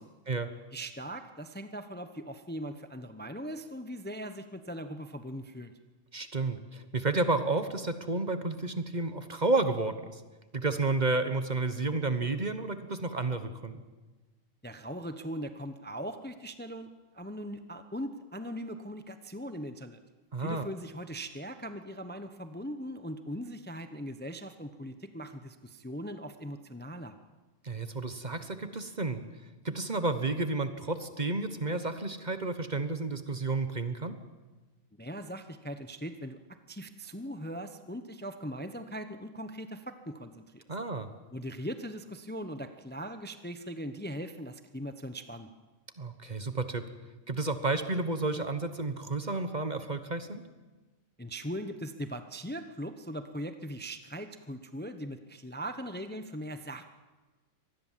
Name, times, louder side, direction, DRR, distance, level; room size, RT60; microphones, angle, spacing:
voice 1, 0.7-5.7 14.6-20.0 20.4-27.2 35.0-36.4 36.7-40.6 41.3-45.5 51.2-56.8, equal, 10° left, 9 dB, 0.8 m, -40 dB
voice 2, 6.1-10.2 10.5-13.8 20.3-20.6 27.6-29.2 29.6-34.2 40.7-41.1 46.0-46.8 47.3-50.4, right 3 dB, 35° right, 10 dB, 1.3 m, -31 dB
25.0 x 19.5 x 7.5 m, 1.2 s
omnidirectional pair, 1.3 m